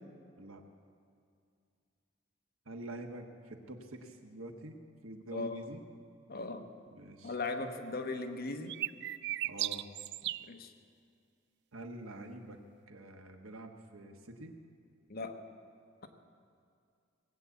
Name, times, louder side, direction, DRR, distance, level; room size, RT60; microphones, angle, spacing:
voice 1, 2.6-5.8 6.9-7.7 9.4-9.9 11.7-12.6 12.9-14.5, right 1 dB, 90° right, 4 dB, 1.3 m, -46 dB
voice 2, 6.3-6.7 7.2-8.7 10.5-10.7 15.1-15.4, left 3 dB, 50° left, 5 dB, 1.1 m, -38 dB
sound 1, 8.7-10.5, right 15 dB, 55° right, 0.3 m, -36 dB
18.5 x 8.2 x 8.4 m, 2.3 s
head